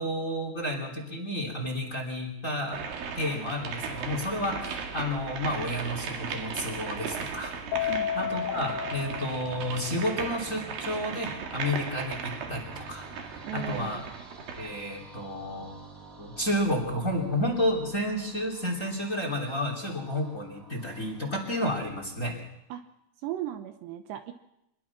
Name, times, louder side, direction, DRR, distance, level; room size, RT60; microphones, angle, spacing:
voice 1, 0.0-2.8 3.2-7.5 7.8-14.0 14.5-15.8 16.2-22.3, left 1 dB, 20° left, 3 dB, 3.0 m, -31 dB
sound 1, 2.7-14.8, right 6 dB, 60° right, 3.3 m, -37 dB
sound 2, 3.8-22.0, right 2 dB, 30° right, 1.7 m, -49 dB
Keyboard (musical), 7.7-10.2, left 10 dB, 75° left, 2.7 m, -33 dB
voice 2, 13.4-14.0 22.7-22.8 23.2-24.3, right 12 dB, 75° right, 7 dB, 3.0 m, -36 dB
25.5 x 20.5 x 6.0 m, 0.84 s
omnidirectional pair, 5.4 m